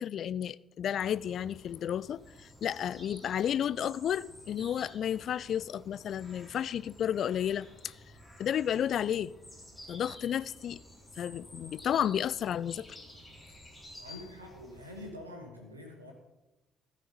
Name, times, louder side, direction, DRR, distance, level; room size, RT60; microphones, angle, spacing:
voice 1, 0.0-7.9 8.4-9.3 9.9-10.8 11.2-12.9, left 9 dB, 50° left, 0.3 m, -32 dB
sound 1, 1.0-15.1, left 1 dB, 15° left, 4.0 m, -52 dB
voice 2, 14.0-16.1, left 1 dB, 90° right, 1.6 m, -46 dB
14.5 x 6.6 x 5.2 m
figure-of-eight pair, 45°, 0 cm